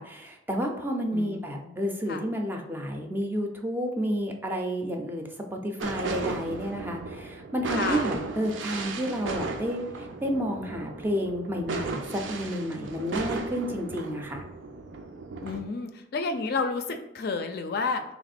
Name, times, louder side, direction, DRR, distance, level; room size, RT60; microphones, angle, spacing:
voice 1, 0.0-9.8 10.2-14.4, equal, 10° right, 2 dB, 0.4 m, -31 dB
voice 2, 1.1-1.8 2.1-2.3 7.8-8.1 15.4-18.0, left 4 dB, 55° left, 7 dB, 0.4 m, -31 dB
sound 1, 5.8-15.6, right 3 dB, 80° right, 0.5 m, -35 dB
3.4 x 3.0 x 4.2 m, 0.87 s
head